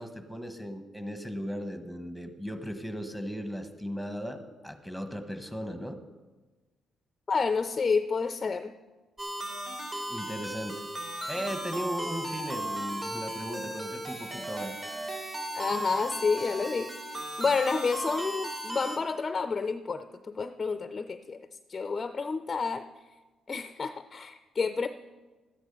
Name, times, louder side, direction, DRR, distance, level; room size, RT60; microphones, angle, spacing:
voice 1, 0.0-6.0 10.1-10.8 11.3-14.7, equal, 5° right, 7 dB, 1.3 m, -37 dB
voice 2, 7.3-8.7 15.5-22.9 23.5-24.9, left 4 dB, 35° left, 10 dB, 0.5 m, -30 dB
sound 1, 9.2-19.0, right 1 dB, 30° right, 2.4 m, -36 dB
13.0 x 9.9 x 5.4 m, 1.2 s
cardioid pair, 90°, 0 cm